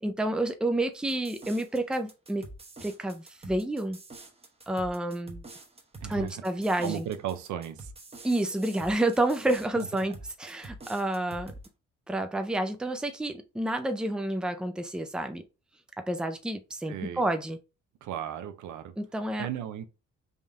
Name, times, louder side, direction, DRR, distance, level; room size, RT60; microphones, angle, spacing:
voice 1, 0.0-2.5 2.8-4.0 4.7-5.4 6.1-7.0 8.2-11.5 12.1-15.4 16.0-17.6 19.0-19.5, right 1 dB, 5° right, 0.5 m, -29 dB
sound 1, 1.1-11.7, right 2 dB, 20° right, 0.9 m, -47 dB
voice 2, 6.0-6.4 6.8-7.9 9.8-9.9 16.9-17.2 18.0-18.9 19.4-19.9, right 10 dB, 75° right, 0.6 m, -35 dB
3.6 x 2.6 x 3.5 m
cardioid pair, 90°, 30 cm